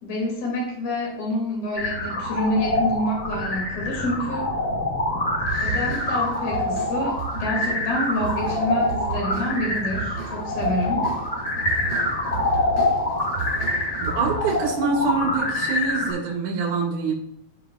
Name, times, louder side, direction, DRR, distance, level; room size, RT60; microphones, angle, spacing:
voice 1, 0.0-4.5 5.6-11.1, left 1 dB, 65° left, -1 dB, 3.4 m, -27 dB
sound 1, 1.8-16.1, left 1 dB, 30° left, 2.6 m, -25 dB
sound 2, 5.4-15.0, right 6 dB, 90° right, 1.3 m, -35 dB
voice 2, 14.0-17.1, right 4 dB, 70° right, -5 dB, 2.8 m, -25 dB
13.5 x 4.7 x 2.3 m, 0.78 s
omnidirectional pair, 3.7 m